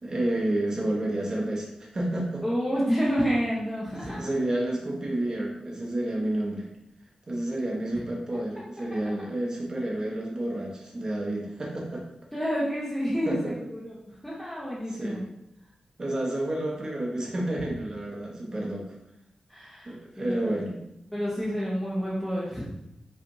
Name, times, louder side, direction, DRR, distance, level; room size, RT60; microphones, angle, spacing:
voice 1, 0.0-2.4 3.8-6.7 7.3-12.0 13.3-13.5 14.9-15.2 16.0-18.9 19.8-20.8, right 1 dB, 35° right, -3 dB, 1.1 m, -30 dB
voice 2, 2.4-4.3 12.3-15.3 19.5-20.6 21.1-22.7, equal, 5° left, -8 dB, 0.9 m, -29 dB
5.7 x 3.4 x 2.7 m, 0.82 s
wide cardioid pair, 160°, 2 cm